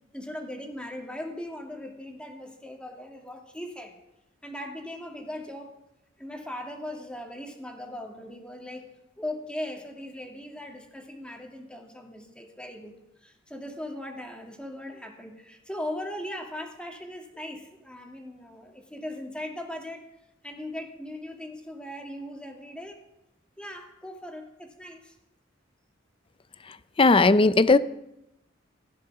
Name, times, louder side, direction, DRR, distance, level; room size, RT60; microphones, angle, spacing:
voice 1, 0.1-3.9 4.4-5.7 6.2-8.9 9.2-12.9 13.2-20.0 20.4-23.0 23.6-25.1, left 1 dB, 5° left, 2 dB, 2.1 m, -39 dB
voice 2, 27.0-27.8, left 3 dB, 25° left, 15 dB, 0.5 m, -17 dB
16.5 x 10.5 x 6.0 m, 0.88 s
head